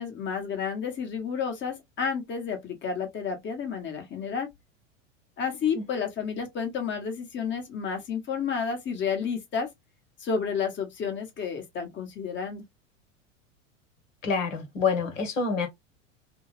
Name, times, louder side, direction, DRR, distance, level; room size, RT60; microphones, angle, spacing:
voice 1, 0.0-4.5 5.4-9.7 10.2-12.6, left 6 dB, 30° left, 1.1 m, -31 dB
voice 2, 14.2-15.7, left 5 dB, 75° left, 1.4 m, -27 dB
2.7 x 2.3 x 3.2 m
hypercardioid pair, 90°, 38 cm